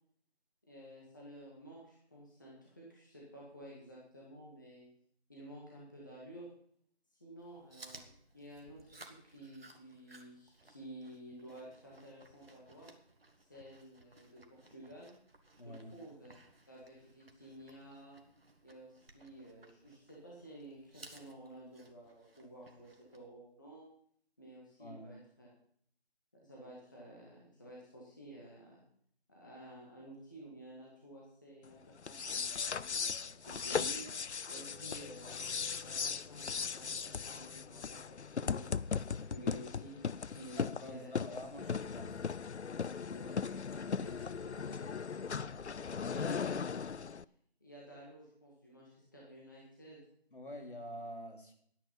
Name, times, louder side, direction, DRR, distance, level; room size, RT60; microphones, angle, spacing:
voice 1, 0.6-4.9 5.3-6.5 7.2-8.0 8.3-12.9 13.4-15.1 15.6-16.3 16.7-18.2 18.6-23.9 24.4-25.5 26.3-28.8 29.3-35.4 35.8-41.7 43.1-45.4 46.0-46.6 47.6-50.0, right 1 dB, 20° left, -5 dB, 1.7 m, -52 dB
Chewing mastication, 7.4-23.3, right 2 dB, 60° right, 1.9 m, -60 dB
voice 2, 15.6-16.0 24.8-25.2 40.6-42.2 50.3-51.5, equal, 50° left, 3 dB, 2.9 m, -47 dB
sound 1, 32.0-47.2, left 6 dB, 85° left, 0.6 m, -38 dB
12.0 x 9.9 x 5.6 m, 0.63 s
figure-of-eight pair, 175°, 33 cm